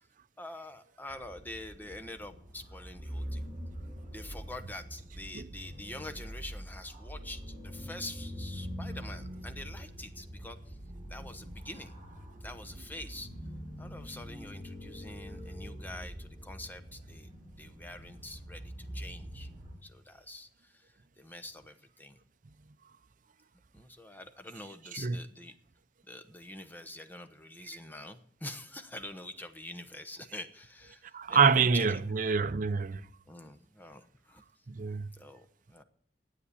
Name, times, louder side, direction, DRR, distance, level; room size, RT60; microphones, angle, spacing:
voice 1, 0.4-3.4 4.1-10.8 11.1-11.9 12.4-13.3 13.8-17.3 17.6-19.5 19.8-22.2 23.7-25.5 26.1-32.0 33.3-34.4 35.1-35.8, left 1 dB, 10° left, 1.0 m, -46 dB
sound 1, 1.1-19.7, equal, 25° right, 4.6 m, -44 dB
voice 2, 31.1-33.0 34.7-35.1, right 5 dB, 50° right, 0.6 m, -26 dB
9.9 x 8.5 x 10.0 m
head